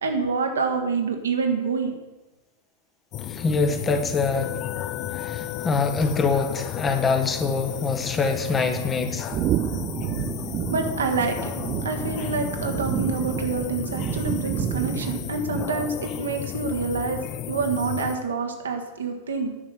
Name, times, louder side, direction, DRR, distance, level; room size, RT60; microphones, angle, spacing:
voice 1, 0.0-2.0 10.7-17.2 17.5-19.5, right 4 dB, 70° right, 4 dB, 1.3 m, -27 dB
sound 1, 3.1-18.2, left 10 dB, 40° left, 0.6 m, -33 dB
voice 2, 3.3-4.5 5.1-9.3, left 4 dB, 20° left, 6 dB, 1.1 m, -24 dB
sound 2, 9.3-16.1, right 13 dB, 35° right, 0.3 m, -30 dB
10.0 x 5.9 x 7.5 m, 1.0 s
figure-of-eight pair, 90°, 0 cm